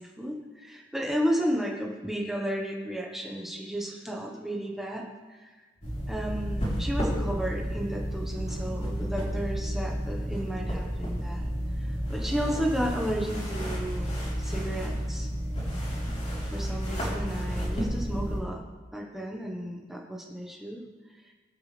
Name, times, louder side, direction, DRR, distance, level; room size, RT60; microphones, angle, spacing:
voice 1, 0.0-5.7 6.1-11.5 11.8-15.3 16.4-18.6 18.9-20.8, equal, ahead, -1 dB, 1.3 m, -33 dB
sound 1, 5.8-18.4, equal, 40° left, 3.9 m, -31 dB
22.0 x 8.6 x 3.4 m, 1.3 s
head